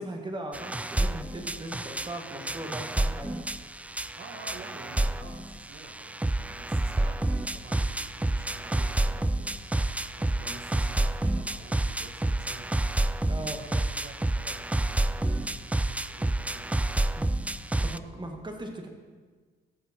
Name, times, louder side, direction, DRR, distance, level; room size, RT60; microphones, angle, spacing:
voice 1, 0.0-3.4 13.3-13.6 17.2-17.4 17.8-18.9, right 1 dB, 25° right, 3 dB, 2.0 m, -38 dB
sound 1, 0.5-18.0, right 1 dB, 5° right, 0.4 m, -29 dB
voice 2, 4.2-12.9 13.4-17.2 17.8-18.1, right 4 dB, 60° right, 3 dB, 1.3 m, -48 dB
18.0 x 7.3 x 4.4 m, 1.4 s
cardioid pair, 90°, 20 cm